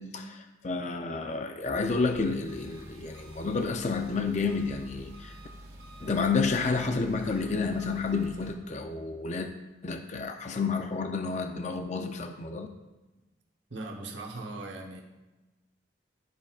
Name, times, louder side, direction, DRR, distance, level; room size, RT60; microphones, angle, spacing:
voice 1, 0.0-5.3 6.0-9.5 9.8-12.7, left 4 dB, 40° left, 5 dB, 0.4 m, -30 dB
Engine, 1.8-8.5, right 1 dB, 55° right, 1.6 m, -48 dB
voice 2, 13.7-15.0, right 2 dB, 85° right, 0 dB, 1.0 m, -39 dB
13.0 x 5.5 x 2.4 m, 1.1 s
head